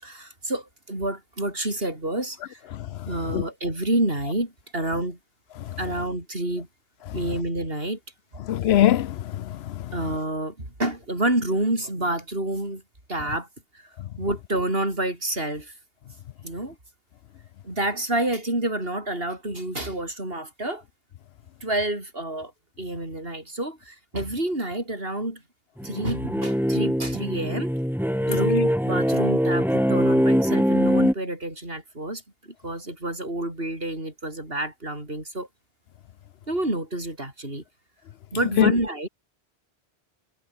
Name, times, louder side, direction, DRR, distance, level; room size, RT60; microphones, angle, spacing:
voice 1, 0.0-2.6 3.1-5.2 5.8-6.7 7.1-8.0 9.9-12.8 13.1-13.5 13.7-13.9 14.2-15.7 16.4-16.8 17.6-20.8 21.6-22.5 22.8-25.4 25.8-27.7 28.3-35.5 36.5-37.6 38.3-39.1, right 1 dB, 65° right, 7.4 m, -28 dB
voice 2, 8.4-9.9 28.4-28.5 38.6-38.7, left 12 dB, 80° left, 0.8 m, -22 dB
sound 1, 25.8-31.1, equal, ahead, 3.1 m, -22 dB
omnidirectional pair, 1.1 m